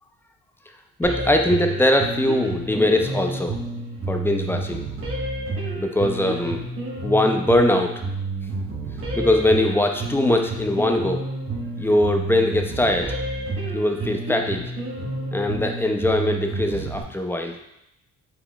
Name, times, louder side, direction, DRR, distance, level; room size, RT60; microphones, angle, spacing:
voice 1, 1.0-3.6 4.1-4.8 5.8-6.6 7.0-7.9 9.1-11.2 11.8-13.1 13.7-14.6 15.3-17.6, left 1 dB, 10° left, 4 dB, 0.4 m, -21 dB
sound 1, 1.0-17.0, right 2 dB, 45° right, 1.2 m, -30 dB
4.6 x 3.7 x 2.3 m, 0.83 s
cardioid pair, 90°, 30 cm